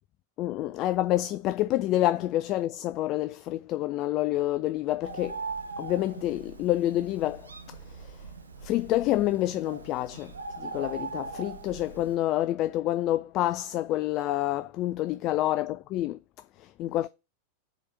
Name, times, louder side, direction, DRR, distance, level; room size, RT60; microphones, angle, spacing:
voice 1, 0.4-5.4 5.8-8.3 8.6-17.1, left 14 dB, 40° left, 0.3 m, -28 dB
Bird, 5.0-12.1, right 4 dB, 75° right, 0.7 m, -40 dB
5.0 x 4.1 x 5.7 m
figure-of-eight pair, 90°, 0 cm